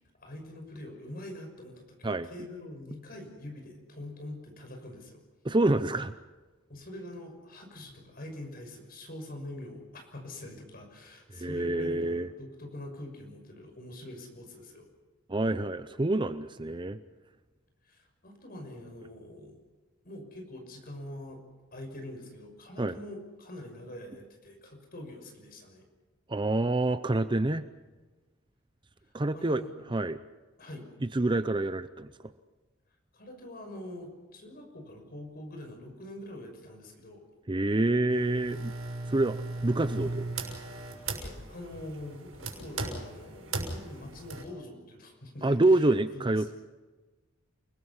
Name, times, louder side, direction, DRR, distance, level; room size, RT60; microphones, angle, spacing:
voice 1, 0.2-5.2 6.7-14.9 17.8-19.6 20.0-21.4 21.7-25.9 29.3-29.7 30.6-30.9 33.1-37.3 40.9-46.5, left 1 dB, 45° left, 4 dB, 6.3 m, -44 dB
voice 2, 5.4-6.1 11.3-12.3 15.3-17.0 22.8-22.9 26.3-27.6 29.1-29.6 29.9-30.2 31.1-32.1 37.5-38.7 39.1-40.2 45.4-46.5, right 2 dB, 20° right, 12 dB, 0.6 m, -27 dB
sound 1, 38.1-44.4, right 2 dB, 75° right, 6.4 m, -37 dB
29.5 x 20.5 x 5.7 m, 1.2 s
head